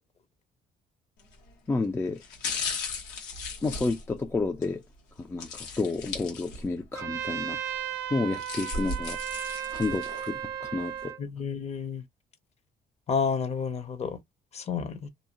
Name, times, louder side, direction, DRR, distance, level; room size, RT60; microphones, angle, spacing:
sound 1, 1.2-1.5 2.2-4.7 5.4-6.9 7.2-7.3 8.1-10.3 10.8-10.9, left 4 dB, 90° left, 1.0 m, -36 dB
voice 1, 1.7-2.2 3.6-4.8 5.2-7.6 8.1-9.2 9.7-11.1, left 3 dB, 15° left, 0.3 m, -30 dB
Trumpet, 6.9-11.2, right 10 dB, 90° right, 0.5 m, -35 dB
voice 2, 11.2-12.0 13.1-14.2 14.5-15.1, left 6 dB, 40° left, 0.7 m, -30 dB
2.6 x 2.0 x 2.8 m
cardioid pair, 110°, 17 cm